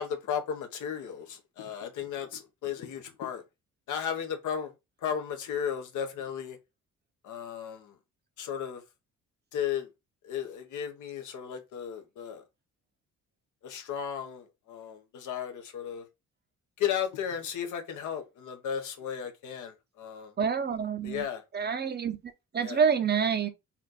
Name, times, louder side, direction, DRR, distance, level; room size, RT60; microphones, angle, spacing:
voice 1, 0.0-3.4 3.9-4.7 5.0-6.6 7.2-8.0 8.4-8.8 9.5-9.9 10.2-12.4 13.6-16.1 16.8-20.3 21.0-21.4 22.6-22.8, left 8 dB, 75° left, 1.0 m, -35 dB
voice 2, 20.4-21.2 21.5-22.2 22.5-23.5, right 6 dB, 35° right, 0.7 m, -27 dB
4.2 x 2.5 x 3.9 m
cardioid pair, 90°, 30 cm